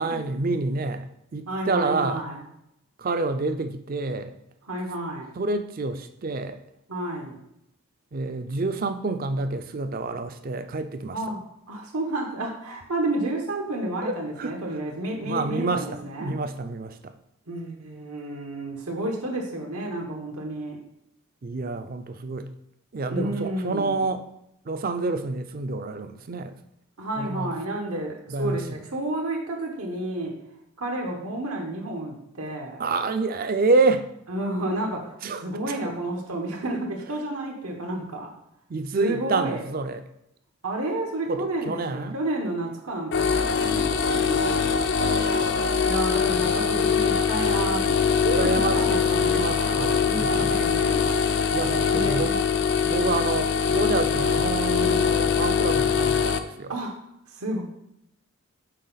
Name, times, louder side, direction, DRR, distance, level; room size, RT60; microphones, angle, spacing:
voice 1, 0.0-2.2 3.0-4.3 5.4-6.6 8.1-11.2 14.0-14.6 15.2-17.1 21.4-22.5 22.9-24.2 24.7-26.5 27.2-27.5 28.3-28.8 32.8-34.1 35.2-35.7 38.7-40.0 41.3-42.2 45.0-45.8 48.2-50.5 51.5-52.4 52.8-56.8, right 3 dB, 40° right, 10 dB, 0.4 m, -28 dB
voice 2, 1.5-2.4 4.7-5.3 6.9-7.3 11.1-11.4 11.7-16.4 17.5-20.8 23.1-24.0 27.0-30.3 30.8-32.8 34.3-35.2 35.4-38.3 39.0-39.6 40.6-44.8 45.8-51.2 51.9-52.4 56.7-57.0 57.3-57.6, right 1 dB, 85° right, 1 dB, 1.2 m, -31 dB
sound 1, 43.1-56.4, left 6 dB, 55° left, 0.4 m, -23 dB
6.6 x 4.4 x 4.0 m, 0.79 s
head